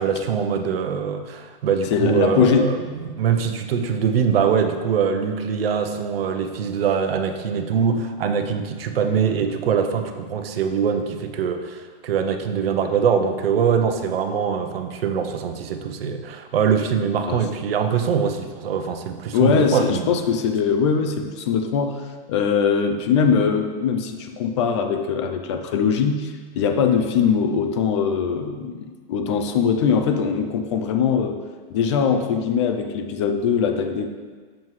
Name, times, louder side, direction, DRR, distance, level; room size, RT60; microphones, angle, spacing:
voice 1, 0.0-2.8 3.0-20.2, right 6 dB, 80° right, 6 dB, 0.9 m, -23 dB
voice 2, 1.9-2.7 17.3-17.4 19.3-31.4 31.7-34.1, left 6 dB, 30° left, 6 dB, 0.4 m, -21 dB
7.4 x 7.3 x 3.1 m, 1.5 s
supercardioid pair, 160°, 29 cm